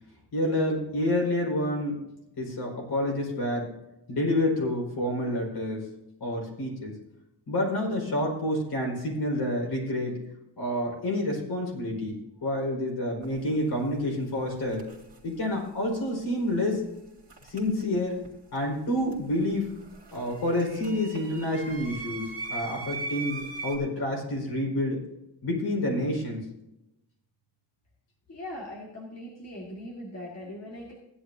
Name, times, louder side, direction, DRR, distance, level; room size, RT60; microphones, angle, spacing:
voice 1, 0.3-2.0 2.4-3.7 4.1-5.9 6.2-6.9 7.5-10.2 10.6-14.8 15.2-16.8 17.5-18.2 18.5-19.7 20.1-25.0 25.4-26.4, left 1 dB, 55° left, -1 dB, 4.7 m, -28 dB
sound 1, 13.2-13.4 14.6-15.2 17.3-18.3 18.5-23.8, right 4 dB, 30° right, 2.5 m, -39 dB
voice 2, 28.3-30.9, left 1 dB, 35° left, -3 dB, 1.9 m, -40 dB
16.0 x 11.0 x 2.8 m, 0.90 s
wide cardioid pair, 180°, 45 cm